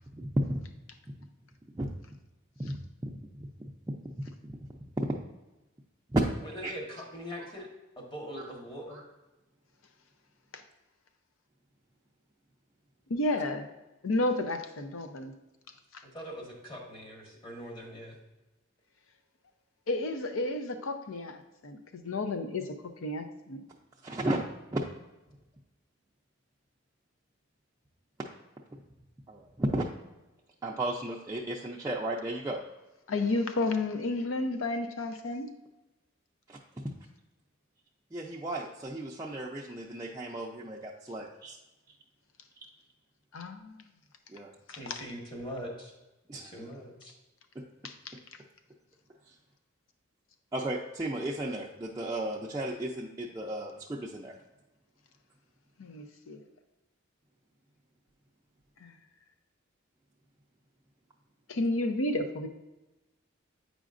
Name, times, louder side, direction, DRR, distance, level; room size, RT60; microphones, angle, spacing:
voice 1, 0.2-0.6 1.7-1.9 2.6-2.8 3.0-3.2 3.6-3.7 4.5-4.6 6.1-6.2 6.6-6.7 8.9-9.0 24.0-24.4 24.7-24.8 29.3-29.8 30.6-32.6 36.5-36.6 38.1-41.6 44.3-44.5 46.3-46.5 47.6-47.7 50.5-54.4, right 1 dB, 15° right, -4 dB, 0.4 m, -34 dB
voice 2, 6.4-7.7 8.1-9.0 16.0-18.1 44.8-45.9 46.3-47.1, equal, 25° left, -1 dB, 1.3 m, -42 dB
voice 3, 13.1-13.7 14.0-15.3 15.9-16.0 19.9-23.6 33.1-35.5 43.3-43.8 44.7-45.0 47.8-48.2 55.8-56.4 58.8-59.0 61.5-62.5, left 2 dB, 85° left, 7 dB, 0.6 m, -32 dB
8.3 x 5.0 x 2.5 m, 1.0 s
head